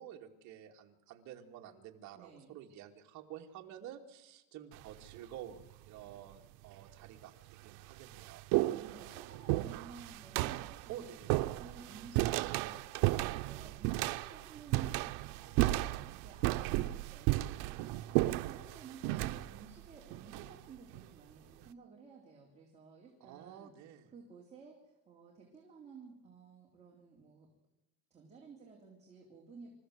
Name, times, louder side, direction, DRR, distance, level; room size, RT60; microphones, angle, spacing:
voice 1, 0.0-8.5 10.9-11.4 23.2-24.1, right 10 dB, 50° right, 2 dB, 2.5 m, -50 dB
voice 2, 2.1-2.6 8.7-11.2 11.6-12.9 13.2-15.0 15.3-23.7 24.1-27.5 28.1-29.7, right 5 dB, 20° right, -3 dB, 3.6 m, -54 dB
sound 1, 4.7-5.2 6.1-6.2 7.0-7.1 7.5-21.1, right 18 dB, 90° right, 0.8 m, -34 dB
27.5 x 14.5 x 8.0 m, 0.96 s
cardioid pair, 180°, 36 cm